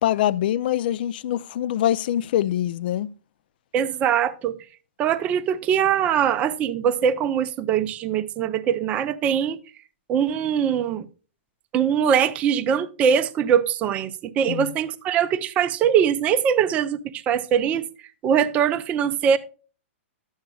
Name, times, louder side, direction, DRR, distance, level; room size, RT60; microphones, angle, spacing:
voice 1, 0.0-3.1 14.5-14.7, left 12 dB, 50° left, 0.4 m, -24 dB
voice 2, 3.7-4.6 5.0-9.6 10.1-11.1 11.7-17.9 18.2-19.4, right 8 dB, 20° right, 0.5 m, -22 dB
11.5 x 7.9 x 2.2 m
hypercardioid pair, 155°, 7 cm